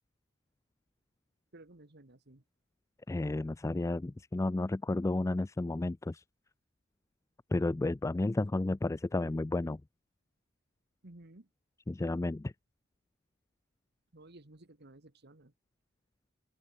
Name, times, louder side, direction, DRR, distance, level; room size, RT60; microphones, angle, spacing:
voice 1, 1.5-2.4 11.0-11.5 14.1-15.5, right 2 dB, 50° right, 1.8 m, -55 dB
voice 2, 3.1-6.2 7.5-9.8 11.9-12.5, left 2 dB, 15° left, 0.3 m, -32 dB
open air
head